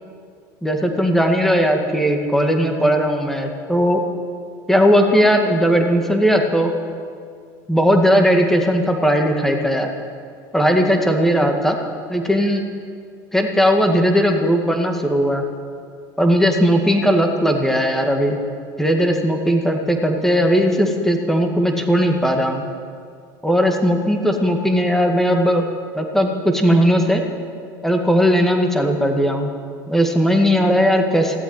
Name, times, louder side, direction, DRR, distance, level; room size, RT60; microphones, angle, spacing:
voice 1, 0.6-4.0 4.7-6.7 7.7-9.9 10.5-11.8 12.1-12.6 13.3-15.4 16.2-18.4 18.8-22.6 23.4-25.6 25.9-27.2 27.8-29.5 29.9-31.4, equal, 5° left, 3 dB, 2.0 m, -17 dB
15.5 x 8.1 x 9.7 m, 2.2 s
supercardioid pair, 95°, 11 cm